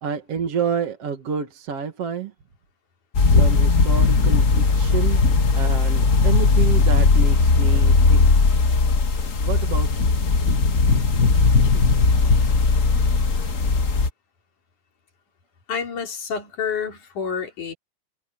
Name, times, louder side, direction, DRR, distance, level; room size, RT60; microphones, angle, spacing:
voice 1, 0.0-2.3 3.2-5.2 5.5-8.3 9.4-10.1, right 6 dB, 55° right, 2.8 m, -29 dB
sound 1, 3.1-14.1, left 4 dB, 45° left, 1.0 m, -18 dB
voice 2, 15.7-17.7, left 6 dB, 85° left, 5.3 m, -29 dB
omnidirectional pair, 3.4 m